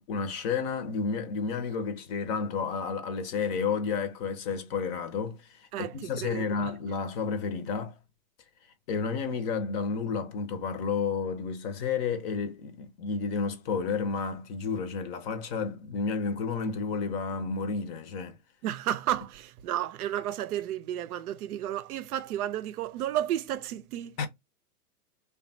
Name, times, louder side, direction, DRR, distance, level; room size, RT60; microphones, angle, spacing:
voice 1, 0.0-8.0 8.9-18.4 24.2-24.3, left 5 dB, 40° left, 0.7 m, -31 dB
voice 2, 5.7-6.7 18.6-24.3, right 12 dB, 70° right, 0.6 m, -32 dB
3.2 x 2.3 x 2.6 m
hypercardioid pair, 120°, 46 cm